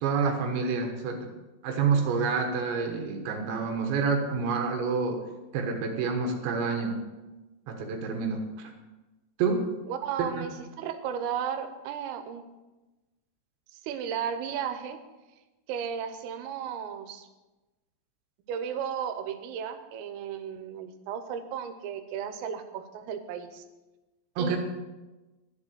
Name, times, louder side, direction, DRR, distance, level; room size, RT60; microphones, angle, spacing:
voice 1, 0.0-1.3 1.6-5.2 5.5-7.0 7.7-8.7 9.4-9.7 10.2-10.5 24.4-24.6, right 5 dB, 70° right, 4 dB, 3.4 m, -28 dB
voice 2, 9.9-12.5 13.8-15.0 15.7-17.3 18.5-23.7 24.4-24.6, right 8 dB, 90° right, 8 dB, 3.5 m, -34 dB
10.5 x 7.7 x 8.1 m, 1.1 s
omnidirectional pair, 5.9 m